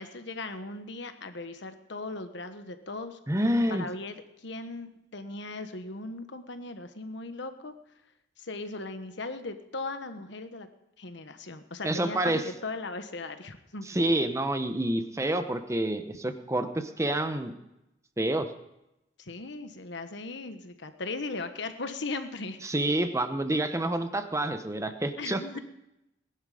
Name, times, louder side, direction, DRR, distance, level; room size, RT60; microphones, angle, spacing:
voice 1, 0.0-3.2 3.7-7.7 8.4-10.7 11.0-13.9 19.2-22.6 25.2-25.6, left 3 dB, 65° left, 8 dB, 1.3 m, -38 dB
voice 2, 3.3-3.8 11.8-12.4 13.9-17.5 18.2-18.5 22.6-25.4, right 1 dB, 15° right, 8 dB, 1.0 m, -28 dB
19.5 x 11.0 x 5.1 m, 0.88 s
head